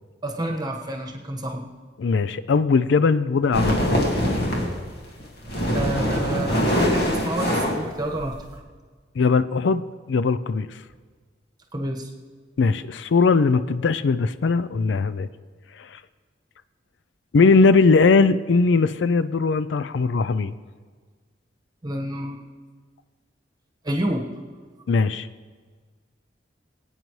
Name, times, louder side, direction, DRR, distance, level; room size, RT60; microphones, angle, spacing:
voice 1, 0.2-1.7 5.7-8.6 11.7-12.1 21.8-22.4 23.8-24.3, right 1 dB, 20° right, 1 dB, 1.3 m, -29 dB
voice 2, 2.0-4.0 9.2-10.7 12.6-15.3 15.8-16.0 17.3-20.6 24.9-25.3, left 4 dB, 75° left, 14 dB, 0.4 m, -20 dB
sound 1, 3.5-4.8 5.2-8.6, equal, 60° left, 1.9 m, -23 dB
23.0 x 9.0 x 3.2 m, 1.5 s
head